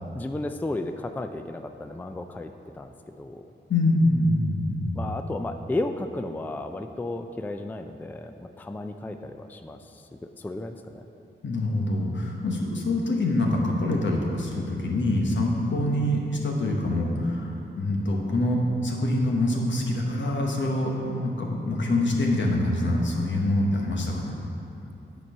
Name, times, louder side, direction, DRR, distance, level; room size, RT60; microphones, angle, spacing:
voice 1, 0.1-3.4 5.0-9.8 10.4-11.0, left 2 dB, 10° left, 7 dB, 0.3 m, -33 dB
voice 2, 3.7-5.1 11.4-24.4, left 1 dB, 75° left, 0 dB, 1.2 m, -25 dB
8.7 x 4.6 x 5.5 m, 3.0 s
cardioid pair, 70°, 19 cm